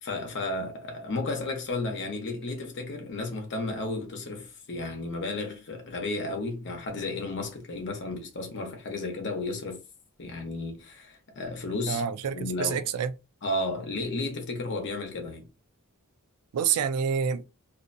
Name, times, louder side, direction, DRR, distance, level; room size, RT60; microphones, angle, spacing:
voice 1, 0.0-9.8 10.2-12.0 12.3-12.9 13.4-15.5, left 2 dB, 55° left, 0.9 m, -33 dB
voice 2, 11.9-13.1 16.5-17.4, right 7 dB, 75° right, 0.4 m, -27 dB
2.5 x 2.2 x 2.5 m
head